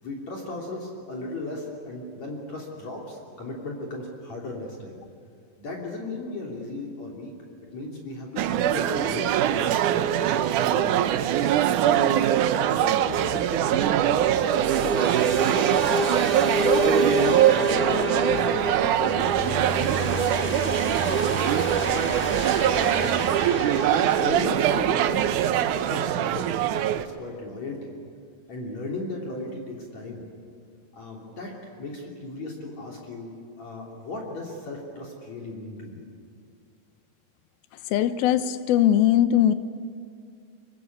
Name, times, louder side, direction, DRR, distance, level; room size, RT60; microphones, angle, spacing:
voice 1, 0.0-5.0 5.6-7.3 7.6-11.3 11.8-13.9 14.3-22.3 22.6-23.3 23.9-27.9 28.5-30.2 30.9-33.3 33.6-36.0, left 2 dB, 50° left, -2 dB, 4.3 m, -36 dB
sound 1, 8.4-27.1, right 11 dB, 70° right, 2.1 m, -23 dB
sound 2, 13.1-25.5, right 1 dB, 35° right, 0.9 m, -29 dB
voice 2, 37.9-39.5, left 11 dB, 85° left, 11 dB, 2.8 m, -20 dB
25.0 x 24.0 x 9.7 m, 2.3 s
omnidirectional pair, 4.2 m